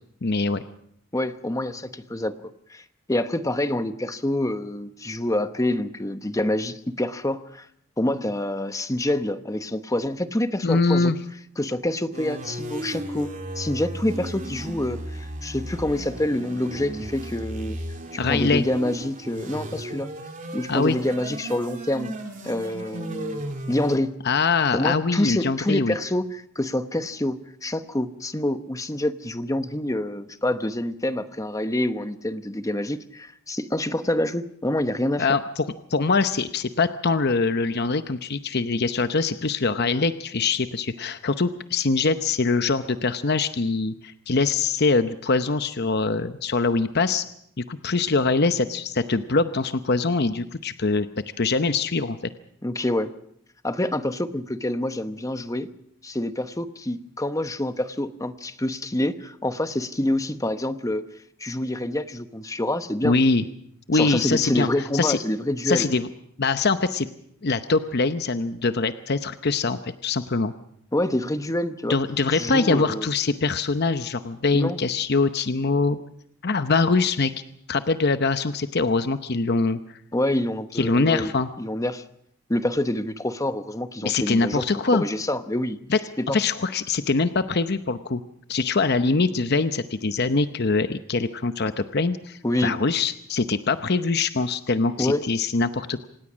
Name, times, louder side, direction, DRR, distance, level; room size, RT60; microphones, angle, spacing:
voice 1, 0.2-0.6 10.6-11.2 18.2-18.6 20.7-21.0 24.2-25.9 35.2-47.2 47.6-51.1 51.4-52.2 63.0-63.4 63.9-65.2 65.6-66.1 66.4-67.1 67.4-70.5 71.9-76.0 76.4-77.3 77.7-79.8 80.7-81.5 84.0-85.0 85.9-86.0 86.3-88.2 88.5-96.1, left 3 dB, 50° left, 10 dB, 0.8 m, -23 dB
voice 2, 1.1-2.3 2.7-7.7 8.0-11.1 11.6-13.3 13.6-17.8 18.3-20.1 20.5-22.1 22.4-24.1 24.7-35.3 52.6-53.1 53.6-55.7 56.0-61.1 61.4-63.2 63.9-65.9 70.9-72.0 72.3-73.1 74.5-74.8 80.1-81.3 81.6-82.0 82.5-84.6 84.9-85.8 86.2-86.4 92.4-92.8 95.0-95.3, left 1 dB, 15° left, 10 dB, 1.0 m, -27 dB
sound 1, 12.1-24.0, right 1 dB, 35° right, 3.0 m, -35 dB
26.0 x 18.5 x 6.3 m, 0.69 s
head